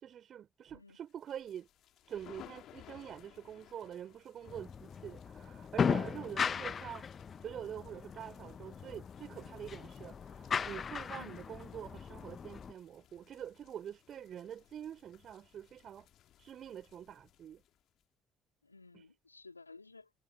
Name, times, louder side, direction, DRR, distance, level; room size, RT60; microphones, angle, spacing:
voice 1, 0.0-1.7 2.1-7.1 7.4-16.1 16.4-17.6 18.9-19.1, right 9 dB, 50° right, 4.1 m, -46 dB
sound 1, 1.1-18.0, left 12 dB, 55° left, 2.8 m, -61 dB
sound 2, 4.5-12.7, left 6 dB, 40° left, 1.0 m, -38 dB
voice 2, 18.6-20.1, left 3 dB, 90° left, 2.5 m, -55 dB
figure-of-eight pair, 50°, 0 cm